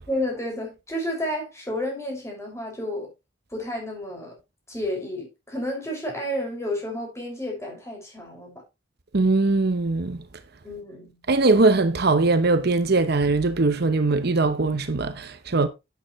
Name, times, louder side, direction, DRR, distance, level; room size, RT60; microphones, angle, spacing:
voice 1, 0.1-3.1 3.5-4.4 4.7-8.6 10.6-11.2, left 1 dB, 15° left, 5.9 m, -31 dB
voice 2, 9.1-10.2 11.3-15.7, right 3 dB, 55° right, 0.9 m, -21 dB
11.0 x 9.2 x 3.2 m
head